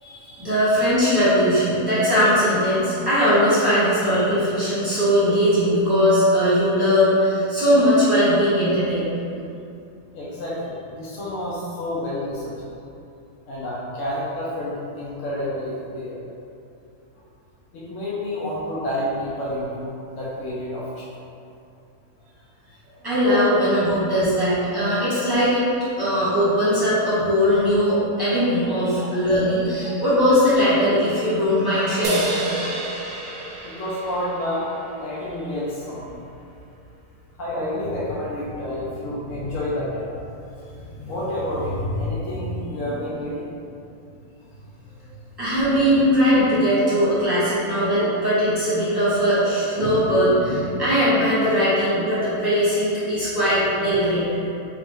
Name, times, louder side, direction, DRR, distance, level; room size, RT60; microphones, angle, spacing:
voice 1, 0.0-9.1 23.0-25.6 26.0-32.5 45.4-54.3, equal, 15° right, -15 dB, 1.4 m, -20 dB
voice 2, 10.1-12.5 13.5-16.2 17.7-21.0 23.3-23.5 29.1-29.2 29.8-30.0 33.6-34.7 35.0-36.1 37.4-40.2 40.6-43.7, left 1 dB, 65° left, -7 dB, 0.9 m, -29 dB
sound 1, 32.0-35.5, right 2 dB, 70° right, 1.0 m, -31 dB
3.0 x 2.9 x 3.5 m, 2.7 s
omnidirectional pair, 1.7 m